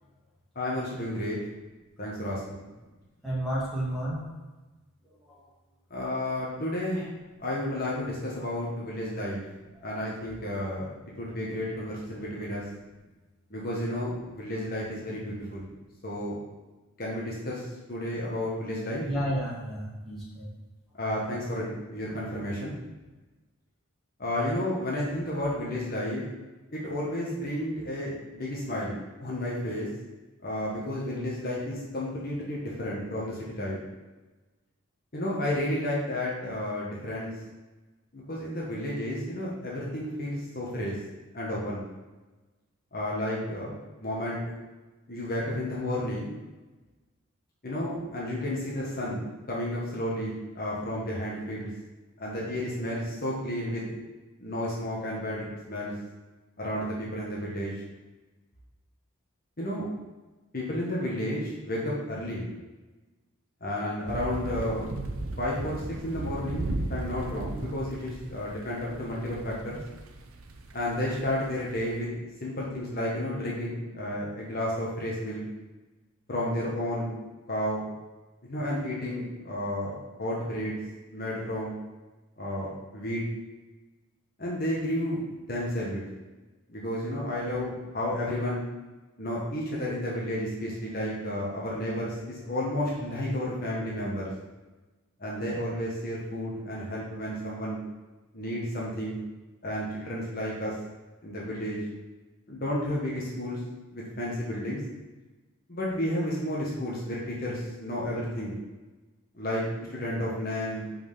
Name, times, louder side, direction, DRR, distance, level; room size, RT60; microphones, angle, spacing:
voice 1, 0.5-1.4 2.0-2.6 5.9-7.1 7.4-9.4 9.8-12.6 13.5-15.7 16.0-16.4 17.0-19.1 21.0-22.7 24.2-26.2 26.7-29.9 30.4-33.8 35.1-37.3 38.1-41.0 41.3-41.8 42.9-44.4 45.1-46.3 47.6-51.7 52.2-53.8 54.4-55.9 56.6-57.8 59.6-59.8 60.5-62.5 63.6-64.9 65.4-69.8 70.7-72.1 72.4-75.4 76.3-77.1 77.5-77.8 78.4-80.7 81.1-81.7 82.4-83.2 84.4-85.2 85.5-86.0 86.7-88.6 89.2-94.3 95.2-97.8 98.3-99.2 99.6-100.7 101.2-101.8 102.5-103.6 103.9-104.8 105.7-108.6 109.3-109.6 109.9-110.9, left 1 dB, 40° left, -5 dB, 1.4 m, -32 dB
voice 2, 3.2-4.2 19.0-20.5, right 1 dB, ahead, -9 dB, 1.9 m, -31 dB
sound 1, 64.1-72.0, right 2 dB, 75° right, 0.7 m, -37 dB
5.4 x 4.5 x 5.6 m, 1.2 s
head